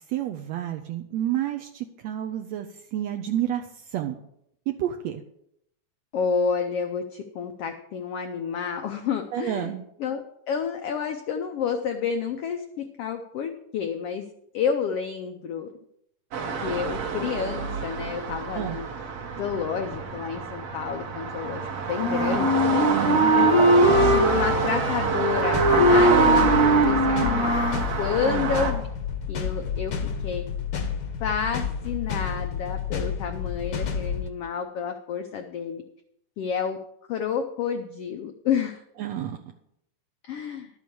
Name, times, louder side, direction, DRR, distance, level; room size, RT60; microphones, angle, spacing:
voice 1, 0.1-3.6 3.9-4.2 4.7-5.2 9.3-9.8 18.5-18.8 22.9-23.3 28.2-28.4 39.0-39.4, right 11 dB, 80° right, 5 dB, 1.6 m, -29 dB
voice 2, 6.1-9.7 10.0-12.6 13.0-14.2 14.5-15.7 16.6-18.9 19.4-22.6 23.3-23.6 24.0-25.6 25.9-27.6 28.0-28.8 29.3-29.9 30.2-30.4 31.2-35.8 36.4-36.8 37.1-38.8 40.3-40.7, left 7 dB, 85° left, 6 dB, 1.3 m, -29 dB
sound 1, 16.3-28.7, right 5 dB, 55° right, 2.0 m, -27 dB
Wind instrument woodwind instrument, 22.0-27.9, right 1 dB, 15° right, 1.1 m, -21 dB
sound 2, 25.5-34.3, left 6 dB, 60° left, 1.2 m, -30 dB
12.0 x 6.2 x 7.0 m, 0.76 s
omnidirectional pair, 3.7 m